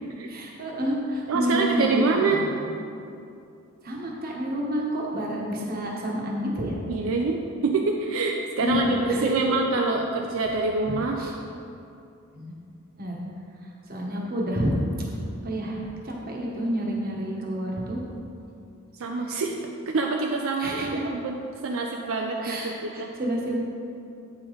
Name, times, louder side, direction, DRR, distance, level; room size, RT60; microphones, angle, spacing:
voice 1, 0.3-2.2 3.8-6.8 8.6-9.5 11.2-11.3 12.3-12.6 13.0-13.2 13.9-14.8 15.4-18.0 20.6-21.1 22.4-23.6, equal, 45° right, -2 dB, 1.1 m, -29 dB
voice 2, 1.3-2.4 6.9-11.2 19.0-19.6 19.9-21.4 21.6-23.1, right 3 dB, 75° right, 1 dB, 0.5 m, -26 dB
8.2 x 5.0 x 3.9 m, 2.6 s
head